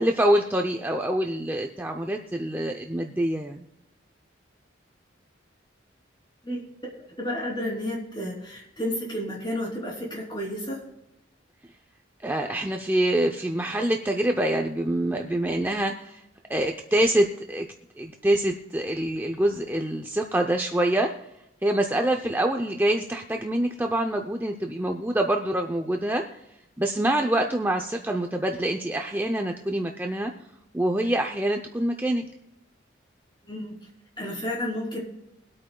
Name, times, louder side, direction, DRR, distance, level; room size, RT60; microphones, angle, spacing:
voice 1, 0.0-3.7 12.2-16.2 16.5-17.7 18.0-21.1 21.6-26.4 26.8-30.3 30.7-32.3, right 1 dB, 10° right, 3 dB, 0.5 m, -25 dB
voice 2, 6.9-10.8 33.4-33.7 34.2-35.0, left 1 dB, 25° left, -2 dB, 3.0 m, -31 dB
23.0 x 8.6 x 2.3 m, 0.88 s
head